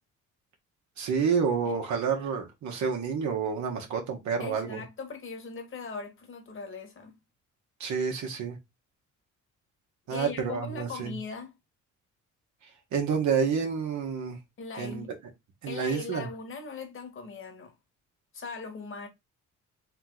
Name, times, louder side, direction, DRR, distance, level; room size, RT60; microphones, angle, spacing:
voice 1, 1.0-4.8 7.8-8.6 10.1-11.1 12.9-14.4 14.8-15.0 15.6-16.3, right 6 dB, 70° right, 1.2 m, -29 dB
voice 2, 4.4-7.2 10.1-11.5 14.6-15.1 15.7-17.7 18.3-19.1, left 5 dB, 45° left, 1.6 m, -40 dB
3.6 x 3.1 x 3.8 m
cardioid pair, 90°, 30 cm